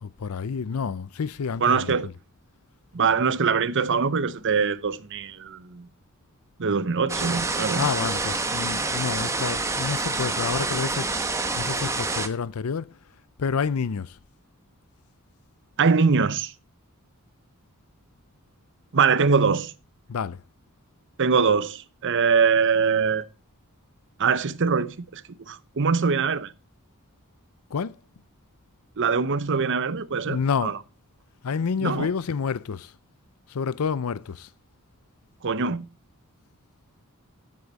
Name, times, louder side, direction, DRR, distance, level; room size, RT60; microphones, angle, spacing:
voice 1, 0.0-1.9 7.8-11.1 11.6-12.9 13.4-14.1 20.1-20.4 27.7-28.0 30.3-30.8 31.4-32.9 33.5-34.5, left 6 dB, 80° left, 0.5 m, -28 dB
voice 2, 1.6-2.1 2.9-5.9 6.6-7.9 15.8-16.5 18.9-19.7 21.2-23.3 24.2-25.2 25.5-26.5 29.0-30.8 31.8-32.1 35.4-35.9, right 5 dB, 60° right, 0.7 m, -23 dB
sound 1, 7.1-12.3, right 3 dB, 15° right, 1.0 m, -27 dB
13.0 x 8.5 x 4.0 m
head